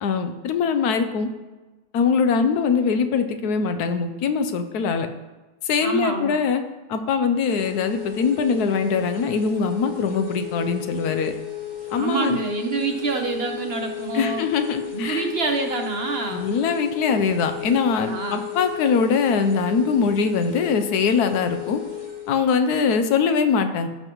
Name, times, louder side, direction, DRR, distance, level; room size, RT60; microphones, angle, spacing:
voice 1, 0.0-1.3 1.9-5.1 5.6-6.6 6.9-11.3 11.9-12.4 14.1-15.3 16.3-21.8 22.3-23.9, left 5 dB, 85° left, 8 dB, 1.3 m, -22 dB
voice 2, 5.8-6.4 11.9-14.5 14.9-16.5 18.0-18.5, right 4 dB, 50° right, 4 dB, 0.9 m, -27 dB
sound 1, 7.4-22.3, left 11 dB, 40° left, 2.7 m, -34 dB
14.5 x 5.6 x 3.0 m, 1.2 s
omnidirectional pair, 1.6 m